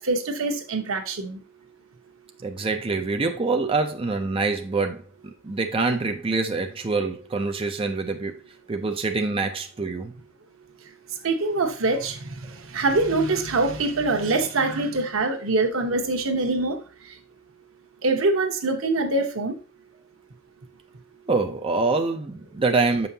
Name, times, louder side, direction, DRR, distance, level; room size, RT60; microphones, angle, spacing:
voice 1, 0.0-1.4 11.2-12.2 12.7-16.8 18.0-19.5, right 2 dB, 85° right, 1.0 m, -24 dB
voice 2, 2.4-5.0 5.4-8.4 8.7-10.1 21.3-23.1, right 3 dB, 25° right, 0.5 m, -25 dB
6.7 x 5.4 x 2.7 m
head